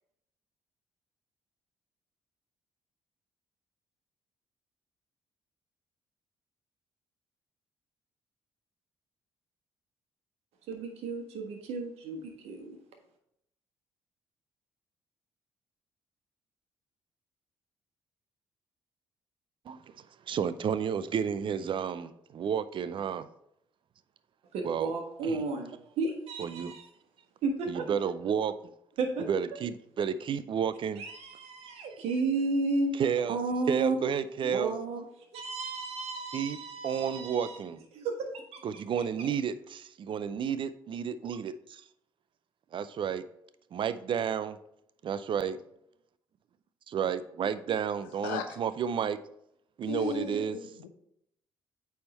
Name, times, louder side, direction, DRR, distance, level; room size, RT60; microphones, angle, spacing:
voice 1, 10.7-12.8 24.5-26.9 27.4-27.9 29.0-29.3 31.0-33.0 33.3-34.0 34.4-35.0 35.3-37.6 37.9-38.6, right 3 dB, 65° right, 4 dB, 1.3 m, -33 dB
voice 2, 20.3-23.3 24.6-24.9 25.2-25.4 26.4-26.8 27.7-28.6 29.3-31.0 31.6-31.8 32.8-33.4 33.7-34.7 36.3-36.6 36.8-37.8 38.6-41.8 42.7-43.2 43.7-44.6 45.0-45.6 46.9-49.2 49.8-50.6, right 7 dB, 50° right, 14 dB, 0.5 m, -31 dB
voice 3, 49.9-50.9, left 7 dB, 80° left, 7 dB, 0.7 m, -36 dB
8.6 x 3.6 x 4.2 m, 0.76 s
hypercardioid pair, 50°, 11 cm